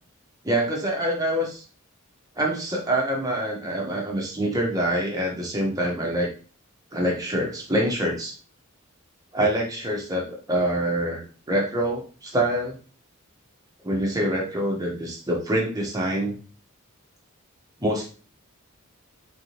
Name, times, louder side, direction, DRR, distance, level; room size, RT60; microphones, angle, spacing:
voice 1, 0.4-1.6 2.4-6.3 6.9-8.3 9.3-12.8 13.8-16.4 17.8-18.1, right 1 dB, 15° right, -2 dB, 1.1 m, -25 dB
3.7 x 3.6 x 2.9 m, 0.38 s
head